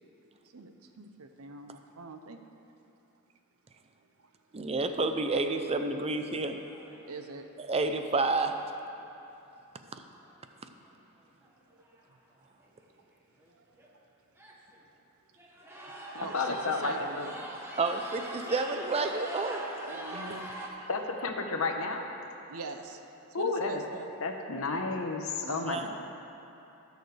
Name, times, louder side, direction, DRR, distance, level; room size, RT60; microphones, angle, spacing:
voice 1, 0.4-2.4 3.8-3.9 4.2-4.3 7.0-7.5 12.1-12.2 13.5-14.1 16.2-17.2 19.9-20.9 22.5-23.0 23.3-24.1 25.4-25.9, right 4 dB, 70° right, 7 dB, 0.7 m, -44 dB
voice 2, 4.5-6.6 7.7-8.5 17.8-20.2 25.7-25.9, right 3 dB, 30° right, 7 dB, 0.6 m, -30 dB
sound 1, 5.1-5.5 6.0-6.1 6.5-7.0 10.2-10.3 11.4-11.5 11.8-12.1 12.6-12.7 13.4-13.5 13.8-13.9 14.4-14.8 15.4-20.7, right 1 dB, 10° right, 1.0 m, -42 dB
voice 3, 16.3-17.3 20.9-22.1 23.3-23.8 24.2-25.9, left 3 dB, 70° left, 3 dB, 1.0 m, -31 dB
19.5 x 6.5 x 3.3 m, 2.8 s
head